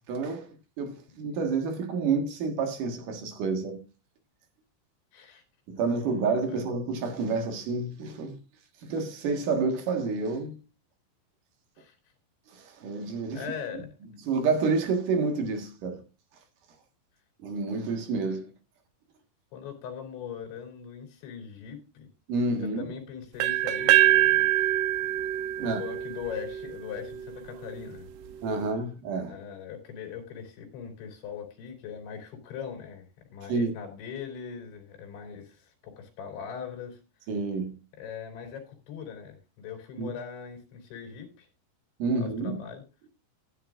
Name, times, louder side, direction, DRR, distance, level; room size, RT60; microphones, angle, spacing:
voice 1, 0.1-3.8 5.7-8.4 8.8-10.6 12.5-13.4 14.2-16.0 17.4-18.5 22.3-22.9 25.6-25.8 28.4-29.4 33.5-33.7 37.3-37.8 40.0-40.1 42.0-42.6, right 4 dB, 55° right, 2.7 m, -29 dB
voice 2, 5.1-5.4 6.5-6.6 11.8-12.0 13.3-13.9 19.5-22.1 22.6-24.5 25.6-28.1 29.3-37.0 38.0-41.5 42.2-42.8, left 7 dB, 85° left, 5.3 m, -40 dB
sound 1, 23.4-27.3, right 14 dB, 75° right, 2.5 m, -24 dB
15.5 x 9.5 x 2.5 m
omnidirectional pair, 5.2 m